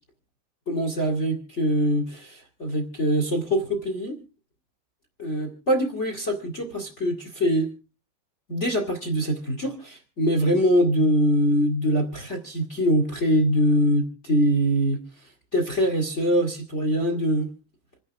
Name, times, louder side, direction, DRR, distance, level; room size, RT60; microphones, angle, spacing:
voice 1, 0.7-4.2 5.2-7.7 8.5-15.0 15.5-17.5, equal, 30° left, 1.2 m, -23 dB
28.0 x 11.0 x 3.5 m
omnidirectional pair, 5.2 m